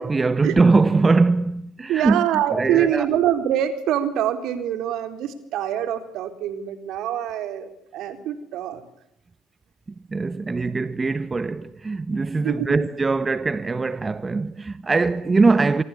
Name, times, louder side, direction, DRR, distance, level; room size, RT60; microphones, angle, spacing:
voice 1, 0.0-2.2 2.5-3.1 10.1-15.8, right 3 dB, 25° right, 1.5 m, -21 dB
voice 2, 1.9-8.9 12.4-12.8, right 11 dB, 65° right, 4.1 m, -25 dB
27.0 x 23.0 x 8.6 m
hypercardioid pair, 65°, 0 cm